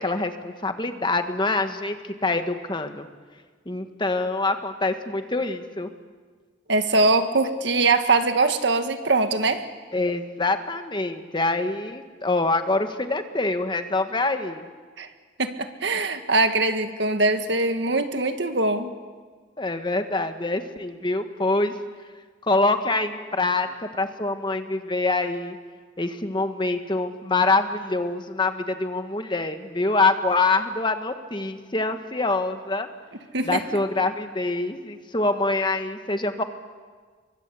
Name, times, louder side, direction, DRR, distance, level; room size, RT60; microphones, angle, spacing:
voice 1, 0.0-3.1 3.6-5.9 9.9-14.6 19.6-21.7 22.4-25.6 26.0-32.9 33.5-36.4, left 3 dB, 25° left, 7 dB, 1.5 m, -25 dB
voice 2, 6.7-9.6 15.0-15.1 15.4-18.9 33.3-33.6, right 3 dB, 65° right, 7 dB, 1.8 m, -22 dB
29.5 x 23.5 x 8.4 m, 1.5 s
head